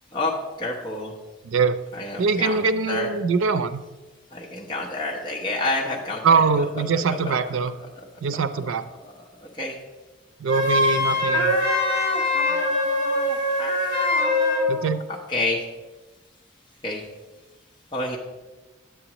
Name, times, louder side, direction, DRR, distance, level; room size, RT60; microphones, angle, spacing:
voice 1, 0.1-1.1 1.9-3.1 4.3-7.6 9.4-9.8 11.3-15.6 16.8-17.0 17.9-18.2, left 2 dB, 25° left, -3 dB, 0.9 m, -29 dB
voice 2, 1.4-1.8 2.2-3.8 6.2-7.7 8.2-8.9 10.4-11.6 14.7-15.0, right 5 dB, 90° right, 12 dB, 0.5 m, -22 dB
Wind instrument woodwind instrument, 10.5-14.7, left 1 dB, 45° right, 3.1 m, -23 dB
9.9 x 8.4 x 3.0 m, 1.2 s
head